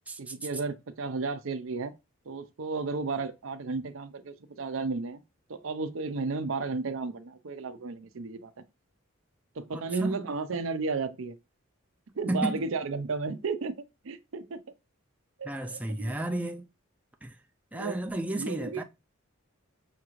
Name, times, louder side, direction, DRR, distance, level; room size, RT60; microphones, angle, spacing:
voice 1, 0.2-1.9 2.3-5.2 5.5-8.6 9.6-11.4 12.2-13.7 14.0-14.6 15.4-16.2 17.7-18.0 18.3-18.8, right 4 dB, 65° right, 0.5 m, -33 dB
voice 2, 9.7-10.2 12.3-12.5 15.4-16.6 17.2-17.4 17.7-18.8, right 1 dB, 5° right, 0.4 m, -32 dB
5.8 x 2.5 x 3.1 m
head